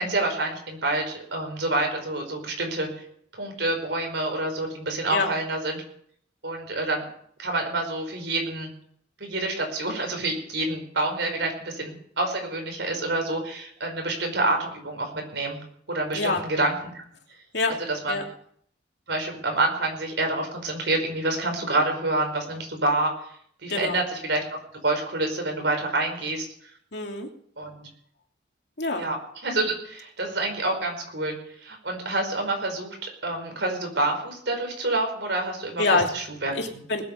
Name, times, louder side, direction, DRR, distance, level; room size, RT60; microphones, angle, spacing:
voice 1, 0.0-2.9 3.3-5.8 6.4-7.0 7.4-8.7 9.2-15.6 15.9-17.0 17.9-18.2 19.1-23.1 23.6-26.5 27.6-27.9 29.0-29.2 29.4-31.3 31.6-36.5, right 2 dB, 70° right, 3 dB, 5.2 m, -27 dB
voice 2, 23.7-24.0 26.9-27.3 28.8-29.1 35.8-36.1 36.5-37.0, left 3 dB, 65° left, 2 dB, 2.9 m, -25 dB
20.0 x 9.1 x 6.9 m, 0.64 s
head